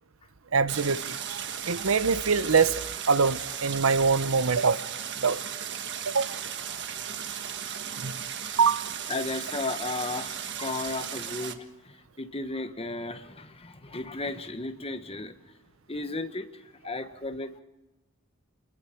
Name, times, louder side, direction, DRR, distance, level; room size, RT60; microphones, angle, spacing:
voice 1, 0.5-1.0 1.3-2.8 3.1-4.9 5.2-5.4 6.1-6.3 8.0-8.1 8.6-8.9, right 5 dB, 85° right, 0.8 m, -24 dB
Stream, 0.7-11.5, right 8 dB, 60° right, 1.4 m, -36 dB
voice 2, 9.1-15.3 15.9-17.6, left 2 dB, 30° left, 1.4 m, -34 dB
29.0 x 21.0 x 4.5 m
head